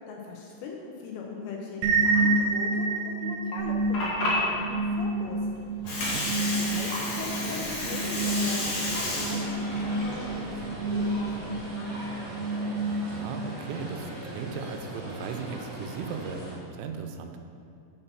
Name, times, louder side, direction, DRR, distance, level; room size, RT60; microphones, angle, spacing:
voice 1, 0.1-5.4 6.5-10.6 10.9-12.0, left 4 dB, 85° left, 0 dB, 2.7 m, -40 dB
sound 1, 1.8-13.5, right 3 dB, 70° right, 2.3 m, -29 dB
Water, 3.6-11.5, left 1 dB, 60° left, 1.9 m, -32 dB
sound 2, 5.8-16.5, right 1 dB, 50° right, 1.7 m, -40 dB
voice 2, 5.8-6.3 12.8-17.4, right 5 dB, 90° right, 5 dB, 3.1 m, -37 dB
6.7 x 5.7 x 5.8 m, 2.6 s
omnidirectional pair, 5.5 m